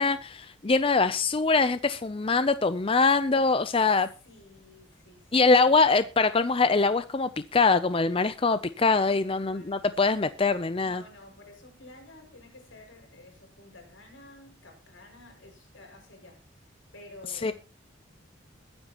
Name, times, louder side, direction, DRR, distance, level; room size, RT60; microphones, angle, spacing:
voice 1, 0.0-4.1 5.3-11.0 17.4-17.5, left 4 dB, 25° left, 0.5 m, -23 dB
voice 2, 4.2-5.8 9.1-9.9 10.8-16.4 16.9-17.5, left 2 dB, 75° left, 6.0 m, -51 dB
21.5 x 9.7 x 3.0 m
head